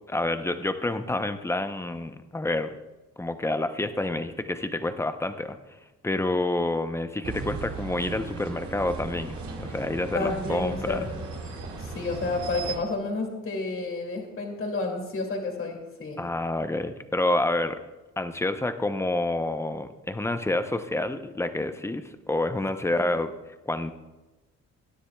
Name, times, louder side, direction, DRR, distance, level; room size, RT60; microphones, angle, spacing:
voice 1, 0.1-2.8 3.2-11.1 16.2-17.8 18.2-23.9, left 2 dB, 10° left, 9 dB, 0.7 m, -28 dB
sound 1, 7.2-12.8, right 4 dB, 65° right, 3.2 m, -36 dB
voice 2, 10.1-11.1 11.8-16.2, left 3 dB, 45° left, 1 dB, 2.5 m, -30 dB
20.5 x 9.9 x 2.3 m, 1.1 s
cardioid pair, 90°, 30 cm